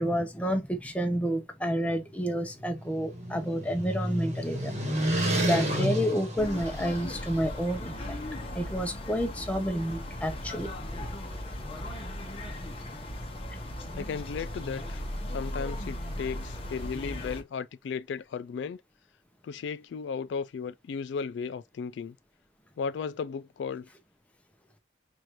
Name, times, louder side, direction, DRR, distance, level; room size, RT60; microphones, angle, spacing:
voice 1, 0.0-4.7 5.0-8.2 8.6-10.7 11.0-11.1, equal, 5° left, 0.5 m, -30 dB
sound 1, 2.5-7.3, right 1 dB, 40° right, 1.2 m, -30 dB
sound 2, 6.4-17.4, left 1 dB, 30° left, 0.8 m, -37 dB
voice 2, 13.9-15.0 15.3-18.8 19.4-22.2 22.8-23.9, left 6 dB, 75° left, 0.3 m, -35 dB
4.7 x 2.4 x 2.9 m
head